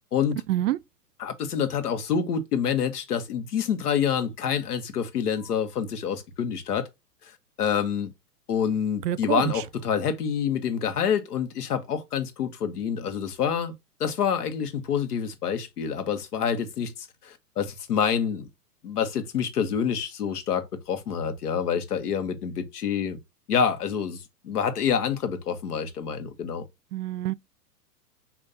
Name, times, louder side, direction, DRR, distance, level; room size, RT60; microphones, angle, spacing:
voice 1, 1.2-6.9 7.6-8.1 8.5-13.7 14.0-18.5 18.8-23.2 23.5-26.6, left 7 dB, 70° left, 1.4 m, -27 dB
voice 2, 9.1-9.5 26.9-27.3, right 14 dB, 75° right, 0.5 m, -26 dB
6.6 x 2.9 x 2.8 m
hypercardioid pair, 145°, 48 cm